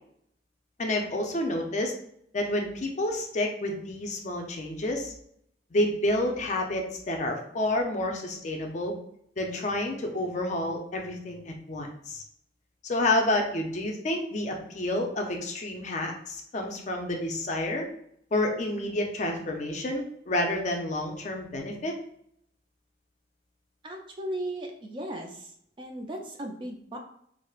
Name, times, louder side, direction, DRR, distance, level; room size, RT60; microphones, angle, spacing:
voice 1, 0.8-1.9 2.3-5.1 5.7-8.9 9.4-12.2 12.8-17.9 18.3-21.9, left 1 dB, 40° left, 2 dB, 0.5 m, -29 dB
voice 2, 23.8-25.5 25.8-27.0, right 1 dB, 25° right, 2 dB, 0.3 m, -36 dB
4.4 x 2.0 x 2.3 m, 0.69 s
head